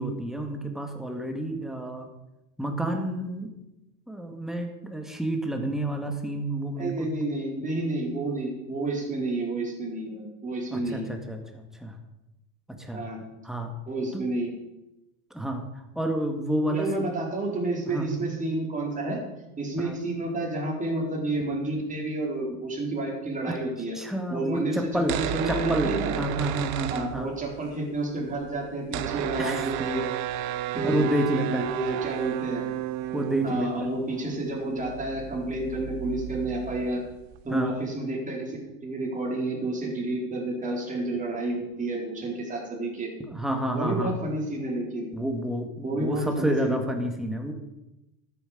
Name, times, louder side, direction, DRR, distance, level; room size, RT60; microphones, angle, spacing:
voice 1, 0.0-2.1 2.6-3.5 4.1-7.1 10.7-12.0 12.7-13.0 13.4-13.7 14.1-14.2 15.3-15.6 16.0-16.9 17.9-18.4 19.8-20.0 23.4-23.6 23.9-25.2 25.5-25.9 26.2-27.3 29.4-29.6 30.8-31.7 33.1-33.7 37.5-37.8 43.3-44.1 45.1-47.5, right 1 dB, ahead, 4 dB, 1.9 m, -29 dB
voice 2, 6.8-11.1 12.9-13.2 13.9-14.5 16.7-19.2 19.6-24.0 24.3-26.2 26.9-30.1 30.7-31.0 31.5-32.6 33.4-37.0 37.4-43.1 43.7-45.1 45.8-46.8, right 2 dB, 15° right, -2 dB, 4.1 m, -30 dB
sound 1, 24.9-27.7 27.9-28.0 28.2-37.6, right 13 dB, 50° right, 0.9 m, -33 dB
12.5 x 9.5 x 5.1 m, 0.95 s
supercardioid pair, 110°, 46 cm